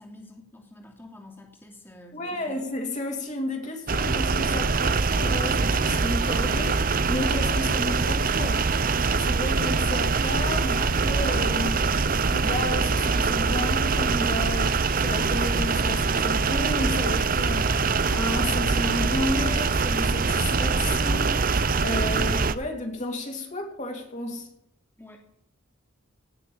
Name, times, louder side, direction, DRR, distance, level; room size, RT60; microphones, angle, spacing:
voice 1, 0.0-2.6 25.0-25.2, left 1 dB, 10° left, 2.8 m, -48 dB
voice 2, 2.1-8.7 9.2-11.9 12.3-17.8 18.1-24.5, left 1 dB, 35° left, 2.9 m, -32 dB
sound 1, 3.9-22.6, right 4 dB, 45° right, 0.8 m, -24 dB
18.0 x 6.9 x 8.8 m
head